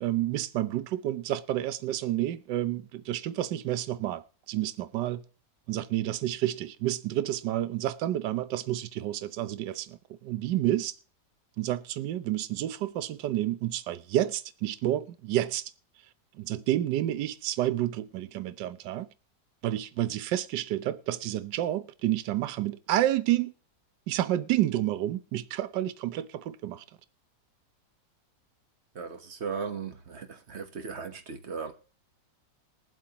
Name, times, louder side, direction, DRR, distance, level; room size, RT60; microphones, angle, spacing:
voice 1, 0.0-5.2 5.7-10.9 11.6-15.7 16.4-19.1 19.6-23.5 24.1-26.8, right 13 dB, 75° right, 1.3 m, -30 dB
voice 2, 28.9-31.7, right 5 dB, 45° right, 1.2 m, -37 dB
21.5 x 7.6 x 2.9 m
omnidirectional pair, 1.9 m